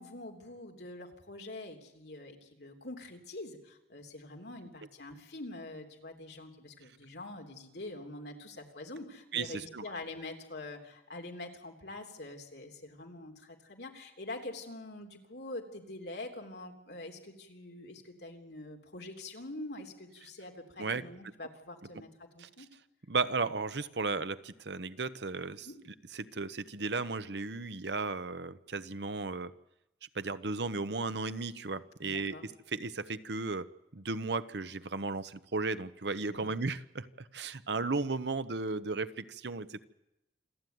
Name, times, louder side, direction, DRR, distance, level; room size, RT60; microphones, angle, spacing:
voice 1, 0.0-22.7 25.6-25.8 32.0-32.4 36.3-36.5, left 2 dB, 75° left, 3 dB, 3.3 m, -45 dB
voice 2, 9.3-9.8 20.8-21.0 22.4-22.5 23.1-25.7 26.1-29.5 30.1-39.9, right 3 dB, 80° right, 13 dB, 0.9 m, -35 dB
27.0 x 13.5 x 9.4 m, 0.90 s
head